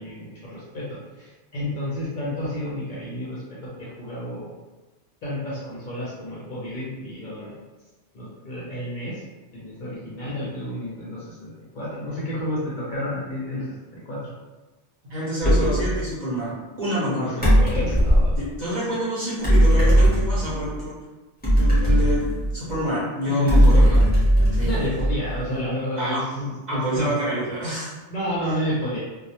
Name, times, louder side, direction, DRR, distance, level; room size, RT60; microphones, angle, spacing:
voice 1, 0.0-4.5 5.2-7.5 8.1-9.2 9.5-13.7 13.9-14.3 17.1-18.3 22.8-22.9 23.3-24.0 24.6-27.2 28.1-29.0, left 1 dB, 55° left, -7 dB, 0.7 m, -30 dB
voice 2, 15.1-17.4 18.4-20.9 21.6-24.0 24.5-24.9 26.0-26.2 26.7-27.9 28.5-28.6, equal, 45° right, -8 dB, 0.8 m, -27 dB
sound 1, 15.4-15.9 17.4-18.4 19.4-20.7 21.4-22.8 23.5-25.4, equal, 10° left, 0.8 m, -18 dB
2.2 x 2.0 x 2.8 m, 1.2 s
omnidirectional pair, 1.2 m